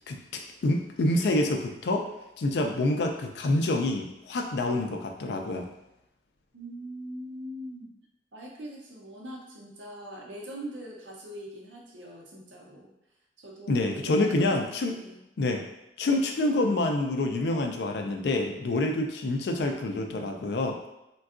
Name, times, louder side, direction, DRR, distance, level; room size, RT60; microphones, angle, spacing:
voice 1, 0.1-2.1 2.4-5.7 13.7-14.9 15.4-15.6 16.0-20.8, left 2 dB, 60° left, 3 dB, 0.4 m, -27 dB
voice 2, 6.5-7.9 8.3-12.9 13.4-14.5 15.0-15.3, equal, 85° right, -1 dB, 0.7 m, -42 dB
3.5 x 2.2 x 2.4 m, 0.90 s
head